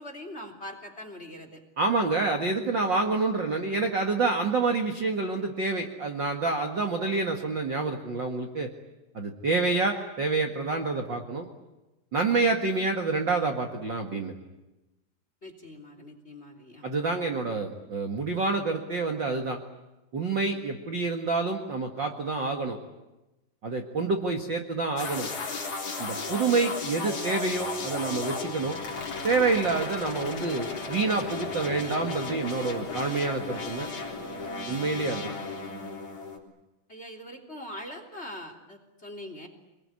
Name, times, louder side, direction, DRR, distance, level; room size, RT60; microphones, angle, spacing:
voice 1, 0.0-1.6 15.4-16.8 36.9-39.5, left 1 dB, 20° left, 6 dB, 3.0 m, -42 dB
voice 2, 1.8-8.7 9.1-11.5 12.1-14.3 16.8-19.6 20.1-22.8 23.6-25.3 26.0-28.8 29.2-33.9 34.7-35.3, right 3 dB, 40° right, 4 dB, 1.7 m, -27 dB
sound 1, 25.0-36.4, left 4 dB, 40° left, 4.4 m, -35 dB
27.0 x 21.5 x 9.7 m, 1.0 s
omnidirectional pair, 4.3 m